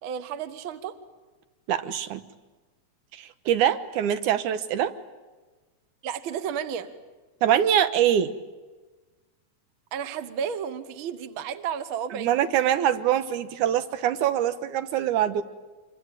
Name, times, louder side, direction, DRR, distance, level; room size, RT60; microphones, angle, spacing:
voice 1, 0.0-0.9 6.0-6.9 9.9-12.3, right 8 dB, 55° right, 11 dB, 1.7 m, -32 dB
voice 2, 1.7-2.2 3.1-4.9 7.4-8.3 12.1-15.4, right 10 dB, 85° right, 11 dB, 2.6 m, -24 dB
27.5 x 23.0 x 9.2 m, 1.3 s
omnidirectional pair, 3.4 m